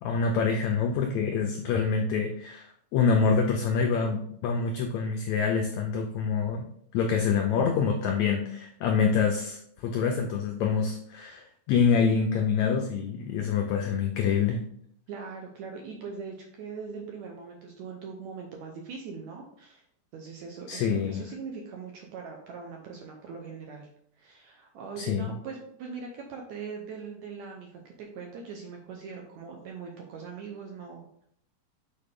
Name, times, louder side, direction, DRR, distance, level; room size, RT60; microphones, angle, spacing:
voice 1, 0.0-6.6 6.9-14.6 20.7-21.2 25.0-25.3, left 5 dB, 90° left, 3 dB, 1.6 m, -26 dB
voice 2, 15.1-19.8 20.1-23.9 24.2-31.2, right 5 dB, 75° right, 1 dB, 1.7 m, -41 dB
6.5 x 4.3 x 3.7 m, 0.65 s
omnidirectional pair, 4.0 m